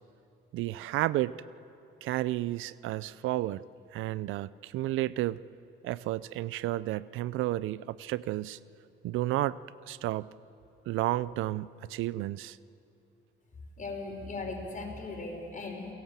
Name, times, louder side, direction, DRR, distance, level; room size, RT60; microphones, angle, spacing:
voice 1, 0.5-1.4 2.0-3.6 3.9-5.4 5.8-8.6 9.0-9.6 9.9-10.3 10.9-12.6, right 16 dB, 90° right, 19 dB, 0.5 m, -31 dB
voice 2, 13.8-15.9, left 3 dB, 40° left, 1 dB, 5.5 m, -38 dB
29.0 x 18.0 x 7.4 m, 2.7 s
cardioid pair, 90°, 20 cm